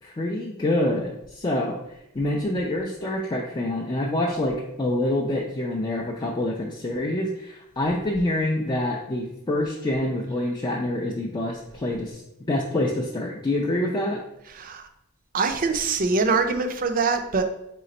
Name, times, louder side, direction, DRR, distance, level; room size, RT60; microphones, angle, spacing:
voice 1, 0.0-12.2 12.5-14.2, left 1 dB, 20° left, -1 dB, 0.4 m, -26 dB
voice 2, 14.5-14.9 15.3-17.4, right 4 dB, 40° right, 7 dB, 0.5 m, -23 dB
3.9 x 3.2 x 4.1 m, 0.83 s
head